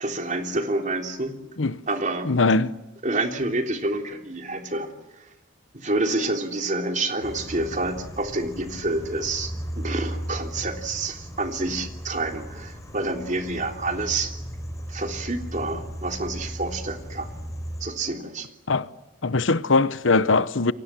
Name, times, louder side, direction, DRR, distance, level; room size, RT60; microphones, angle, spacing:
voice 1, 0.0-1.3 1.9-2.3 3.0-5.3 5.7-14.3 14.9-17.3 17.8-18.5, right 2 dB, 40° right, 3.3 m, -28 dB
voice 2, 2.3-2.7 18.7-18.9 19.2-20.7, left 3 dB, 75° left, 1.0 m, -21 dB
sound 1, 7.2-17.9, equal, 15° left, 5.6 m, -36 dB
29.0 x 24.0 x 7.6 m
head